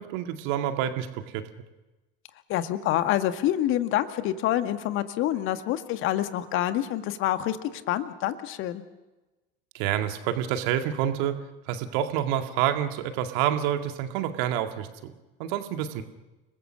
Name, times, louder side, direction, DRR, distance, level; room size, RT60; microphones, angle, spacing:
voice 1, 0.0-1.5 9.7-11.4 11.7-15.1 15.4-16.0, right 11 dB, 55° right, 7 dB, 2.0 m, -28 dB
voice 2, 2.5-8.8, left 13 dB, 45° left, 10 dB, 1.7 m, -27 dB
30.0 x 20.0 x 6.4 m, 1.1 s
figure-of-eight pair, 75°, 30 cm